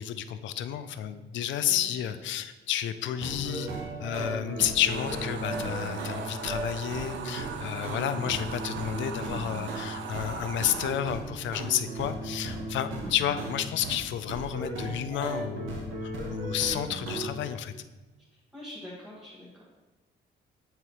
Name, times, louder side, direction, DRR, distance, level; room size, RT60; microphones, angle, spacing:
voice 1, 0.0-3.7 4.0-17.7, left 10 dB, 70° left, 11 dB, 0.4 m, -31 dB
voice 2, 1.6-2.1 13.0-13.1 18.5-19.6, left 1 dB, ahead, -9 dB, 1.5 m, -45 dB
sound 1, 3.0-10.3 10.6-14.0 14.3-17.3, right 2 dB, 90° right, 1.0 m, -36 dB
sound 2, 4.9-10.9, right 6 dB, 65° right, 0.6 m, -39 dB
8.1 x 3.9 x 3.0 m, 1.2 s
cardioid pair, 90°, 20 cm